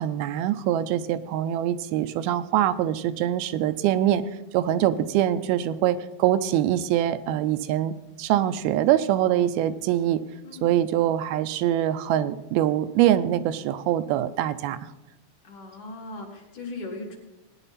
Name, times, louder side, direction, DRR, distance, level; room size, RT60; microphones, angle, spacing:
voice 1, 0.0-4.2 4.5-10.2 10.6-14.8, right 12 dB, 85° right, 11 dB, 2.5 m, -24 dB
voice 2, 10.4-10.8 15.4-17.2, left 2 dB, 55° left, 0 dB, 2.9 m, -39 dB
18.5 x 10.0 x 4.1 m, 0.97 s
omnidirectional pair, 4.3 m